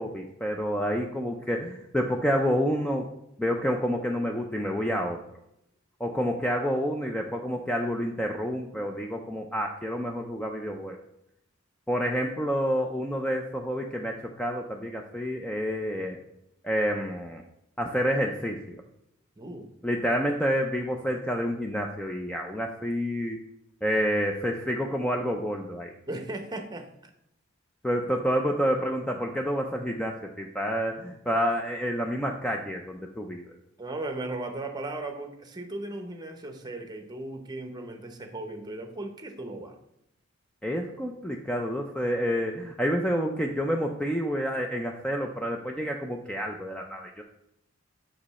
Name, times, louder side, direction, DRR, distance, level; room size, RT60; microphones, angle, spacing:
voice 1, 0.0-3.1 3.4-5.2 6.0-11.0 11.9-16.2 16.6-17.4 17.8-18.8 19.8-23.4 23.8-25.9 27.8-33.5 40.6-47.2, equal, 5° left, 2 dB, 0.4 m, -28 dB
voice 2, 19.4-19.7 26.1-27.1 33.8-39.8, right 2 dB, 20° right, 5 dB, 0.8 m, -37 dB
6.2 x 5.1 x 4.1 m, 0.81 s
head